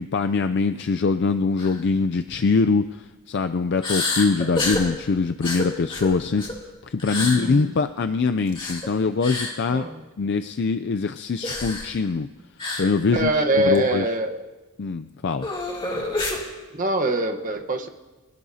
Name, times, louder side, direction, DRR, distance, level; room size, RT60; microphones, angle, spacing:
voice 1, 0.0-6.5 6.8-9.9 10.2-12.3 12.8-14.0 14.8-15.5, left 4 dB, 55° left, 9 dB, 0.4 m, -23 dB
sound 1, 1.6-1.8 2.2-2.3 3.8-4.9 5.4-6.6 7.0-7.4 8.5-8.9 9.2-9.5 11.4-11.9 12.6-12.9 13.2-13.3 13.7-13.8 15.4-16.4, left 2 dB, 25° left, 2.7 m, -28 dB
voice 2, 7.1-7.7 9.7-10.0 13.1-14.4 16.7-17.9, right 1 dB, 40° right, 5 dB, 1.1 m, -24 dB
26.0 x 17.5 x 2.8 m, 1.3 s
head